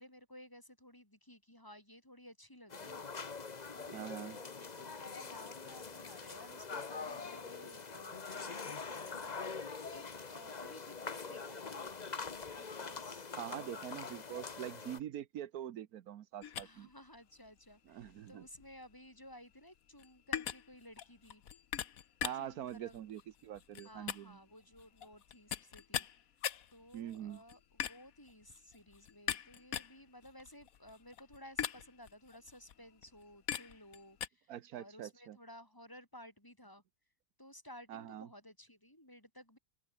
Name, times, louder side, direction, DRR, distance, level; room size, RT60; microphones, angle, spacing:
voice 1, 0.0-3.1 3.7-9.6 9.9-12.0 12.4-13.8 16.6-21.4 22.3-23.1 23.8-26.1 26.7-36.8 37.4-39.6, left 1 dB, 15° left, 4.1 m, -56 dB
sound 1, 2.7-15.0, left 5 dB, 30° left, 1.1 m, -44 dB
voice 2, 3.9-4.4 13.4-16.9 17.9-18.4 22.2-24.4 26.9-27.4 34.5-35.4 37.9-38.3, right 11 dB, 85° right, 1.3 m, -44 dB
sound 2, 16.4-34.3, left 9 dB, 70° left, 1.5 m, -43 dB
open air
omnidirectional pair, 1.5 m